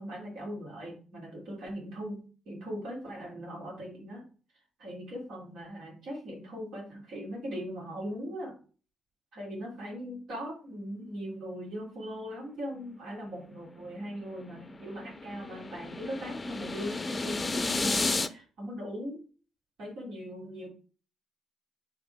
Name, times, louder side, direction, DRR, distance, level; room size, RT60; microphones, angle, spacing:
voice 1, 0.0-4.3 4.8-8.5 9.3-19.2 19.8-20.7, equal, 75° right, -4 dB, 3.5 m, -39 dB
sound 1, 14.0-18.3, left 3 dB, 25° left, 0.5 m, -32 dB
5.3 x 4.3 x 4.8 m, 0.40 s
cardioid pair, 90°, 0 cm